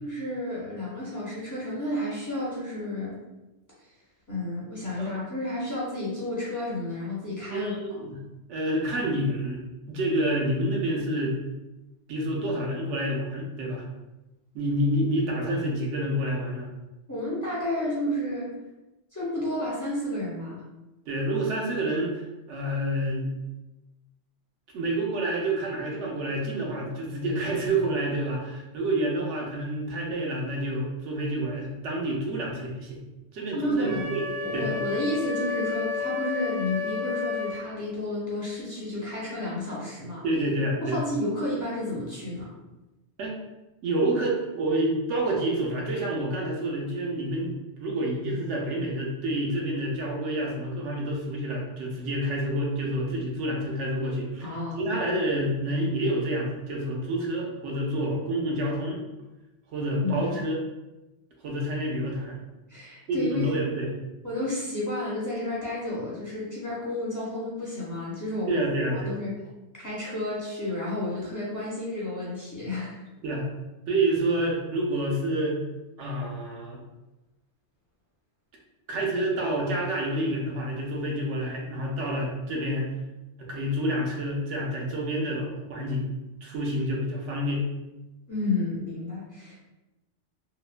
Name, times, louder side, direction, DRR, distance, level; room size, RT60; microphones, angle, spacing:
voice 1, 0.0-3.1 4.3-8.0 17.1-18.5 19.1-20.6 33.5-34.1 34.4-40.2 40.8-42.5 54.4-55.1 60.0-60.4 62.7-63.4 64.2-68.6 69.0-69.3 69.8-73.0 88.3-89.6, left 1 dB, 25° left, -7 dB, 0.4 m, -31 dB
voice 2, 7.5-8.1 8.5-9.6 9.9-11.3 12.1-13.8 14.5-16.7 21.1-23.3 24.7-33.0 33.3-34.2 34.5-34.7 40.2-41.0 43.2-43.3 43.8-59.0 59.7-60.6 61.4-62.4 63.1-63.9 68.5-69.2 73.2-73.5 73.9-75.6 76.0-76.8 78.9-82.9 83.4-86.1 86.4-87.7, right 1 dB, 80° right, -1 dB, 0.9 m, -28 dB
Wind instrument woodwind instrument, 33.8-37.6, left 5 dB, 35° right, 0.5 m, -31 dB
2.9 x 2.0 x 2.3 m, 1.0 s
omnidirectional pair, 1.2 m